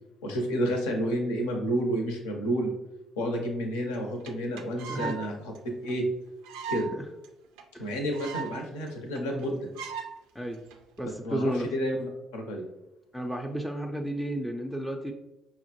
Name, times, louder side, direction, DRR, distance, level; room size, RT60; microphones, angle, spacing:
voice 1, 0.2-2.7 3.2-5.4 5.8-6.0 6.7-6.9 7.8-9.6 11.0-12.0 12.3-12.6, equal, 75° left, 2 dB, 0.6 m, -30 dB
sound 1, 3.9-4.0 4.2-4.3 4.6-5.2 5.5-5.6 5.9-6.0 6.4-6.9 7.2-7.3 7.6-7.7 7.9-8.6 8.9-9.0 9.1-9.4 9.8-10.1 10.7-11.0, right 7 dB, 70° right, 0.4 m, -37 dB
voice 2, 11.0-11.7 13.1-15.1, right 1 dB, 5° left, 1 dB, 0.4 m, -32 dB
5.6 x 2.1 x 2.9 m, 0.97 s
figure-of-eight pair, 50°, 0 cm